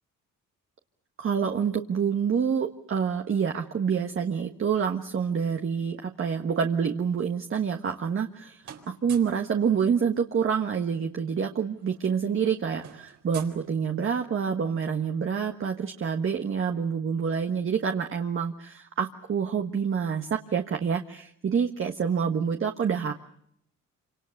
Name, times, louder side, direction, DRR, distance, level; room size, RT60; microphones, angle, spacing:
voice 1, 1.2-23.1, right 6 dB, 45° right, 4 dB, 1.5 m, -27 dB
sound 1, 7.6-8.4 8.6-9.4 10.8-10.9 11.2-11.4 11.6-14.3, right 8 dB, 70° right, 4.2 m, -48 dB
27.0 x 26.0 x 6.6 m, 0.73 s
cardioid pair, 90°, 30 cm